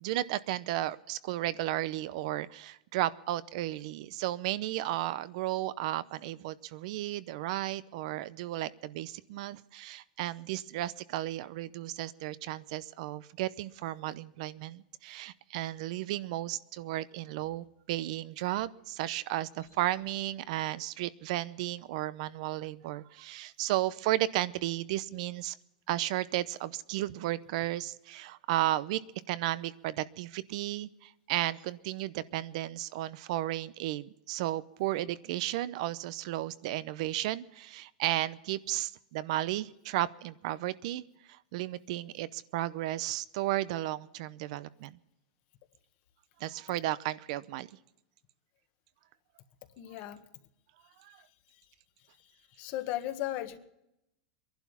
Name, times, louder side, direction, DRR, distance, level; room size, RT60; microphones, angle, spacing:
voice 1, 0.0-25.6 25.9-29.0 29.3-41.0 41.3-45.0 46.4-47.7 51.0-51.2, right 15 dB, 60° right, 17 dB, 0.7 m, -34 dB
voice 2, 49.8-50.2 52.2-52.3 52.6-53.6, left 14 dB, 45° left, 9 dB, 1.5 m, -36 dB
21.5 x 11.5 x 5.7 m, 0.83 s
supercardioid pair, 145°, 4 cm